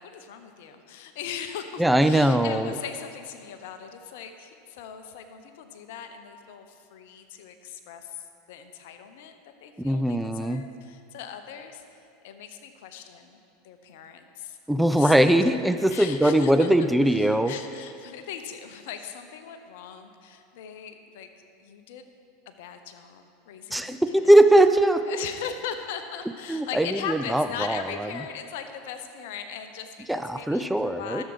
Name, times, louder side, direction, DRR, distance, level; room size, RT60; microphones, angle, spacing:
voice 1, 0.0-9.3 9.6-11.8 12.2-14.6 14.9-15.3 15.9-21.3 21.6-22.0 22.5-24.3 25.1-31.2, left 8 dB, 65° left, 8 dB, 0.9 m, -39 dB
voice 2, 1.8-2.7 9.8-10.7 14.7-17.5 23.7-25.1 26.5-28.1 30.1-31.2, right 1 dB, 5° right, 9 dB, 0.4 m, -21 dB
12.5 x 7.5 x 4.8 m, 2.5 s
hypercardioid pair, 85°, 0 cm